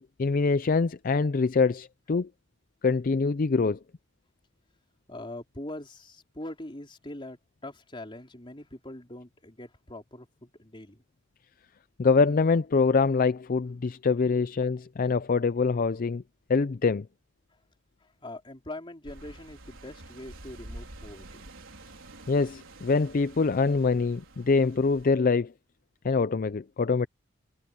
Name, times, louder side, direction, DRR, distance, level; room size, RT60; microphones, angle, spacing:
voice 1, 0.0-2.3 2.8-3.8 12.0-16.2 16.5-17.1 22.3-25.5 26.0-27.1, left 4 dB, 45° left, 0.5 m, -24 dB
voice 2, 5.1-11.0 18.0-21.4, left 1 dB, 25° left, 3.9 m, -43 dB
sound 1, 19.0-25.1, right 1 dB, 85° right, 4.6 m, -48 dB
head